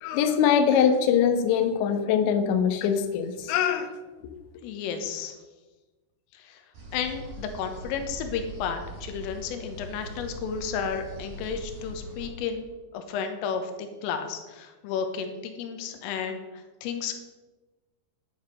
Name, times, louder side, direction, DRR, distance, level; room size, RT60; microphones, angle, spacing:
voice 1, 0.0-3.9, left 8 dB, 75° left, 6 dB, 3.1 m, -23 dB
voice 2, 4.6-5.4 6.4-6.6 6.9-12.6 12.9-17.2, left 6 dB, 90° left, 6 dB, 3.7 m, -32 dB
sound 1, 6.7-12.3, equal, 40° right, 6.1 m, -41 dB
11.0 x 9.5 x 6.4 m, 1.2 s
omnidirectional pair, 5.8 m